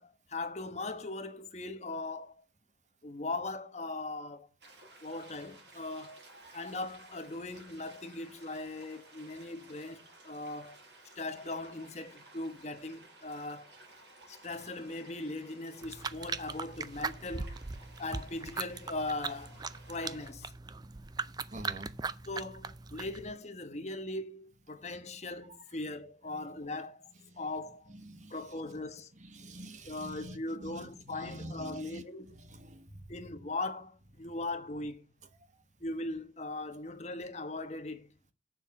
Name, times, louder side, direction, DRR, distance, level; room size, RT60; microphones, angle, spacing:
voice 1, 0.0-2.3 3.0-4.5 5.0-6.2 6.5-10.8 11.2-13.8 14.3-17.6 18.0-19.6 19.9-20.5 22.3-27.1 27.4-27.9 28.3-29.1 29.9-32.3 33.1-35.0 35.8-38.1, left 2 dB, 40° left, 1.2 m, -39 dB
sound 1, 4.6-20.3, right 2 dB, 75° right, 5.9 m, -56 dB
sound 2, 15.8-23.3, right 4 dB, 25° right, 0.4 m, -40 dB
voice 2, 21.5-22.2 26.4-26.5 27.9-28.4 29.2-32.0 32.3-33.1, right 1 dB, 45° right, 1.2 m, -47 dB
7.8 x 7.1 x 6.9 m
head